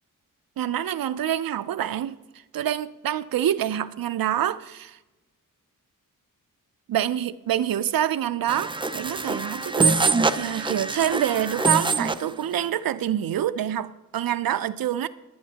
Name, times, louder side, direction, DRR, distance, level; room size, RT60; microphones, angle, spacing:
voice 1, 0.6-2.2 2.5-5.0 6.9-10.0 10.3-15.1, right 11 dB, 85° right, 0.5 m, -26 dB
sound 1, 8.5-12.3, right 4 dB, 15° right, 0.3 m, -24 dB
19.0 x 9.3 x 2.8 m
wide cardioid pair, 135°, 34 cm